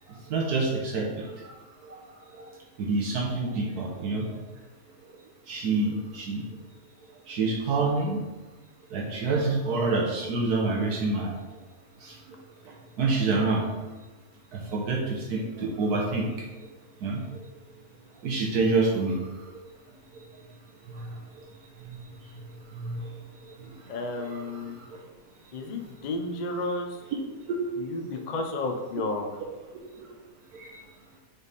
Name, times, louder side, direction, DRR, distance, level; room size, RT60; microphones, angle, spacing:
voice 1, 0.1-1.5 1.8-2.0 2.3-2.5 2.8-4.3 5.5-6.5 7.3-8.2 8.9-11.3 12.0-12.2 12.7-13.7 14.5-16.3 17.0-17.2 18.2-19.6 20.1-20.2 20.9-21.4 21.8-22.1 22.7-23.1 23.4-25.0 27.5-27.6 30.5-30.8, right 3 dB, 75° right, -1 dB, 1.3 m, -28 dB
voice 2, 23.9-24.8 25.5-26.9 27.8-29.3, left 2 dB, 55° left, 3 dB, 0.4 m, -32 dB
7.7 x 3.5 x 4.1 m, 1.2 s
omnidirectional pair, 1.7 m